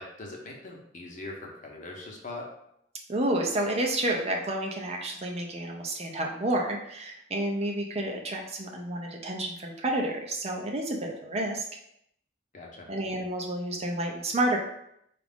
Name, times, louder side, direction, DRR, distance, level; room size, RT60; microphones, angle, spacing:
voice 1, 0.0-2.5 12.5-12.9, left 2 dB, 45° left, -1 dB, 0.9 m, -41 dB
voice 2, 3.1-11.6 12.9-14.6, right 1 dB, 35° right, 1 dB, 0.6 m, -30 dB
4.7 x 2.5 x 3.5 m, 0.75 s
head